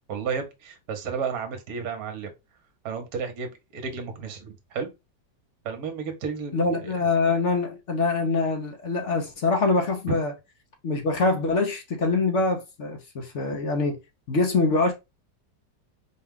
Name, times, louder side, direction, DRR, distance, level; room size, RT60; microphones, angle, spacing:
voice 1, 0.1-2.3 2.8-4.9 5.6-6.9 10.1-10.2, right 6 dB, 60° right, 1.3 m, -32 dB
voice 2, 6.5-10.3 10.8-14.0 14.3-14.9, left 3 dB, 55° left, 0.9 m, -24 dB
4.3 x 2.3 x 3.5 m
omnidirectional pair, 1.9 m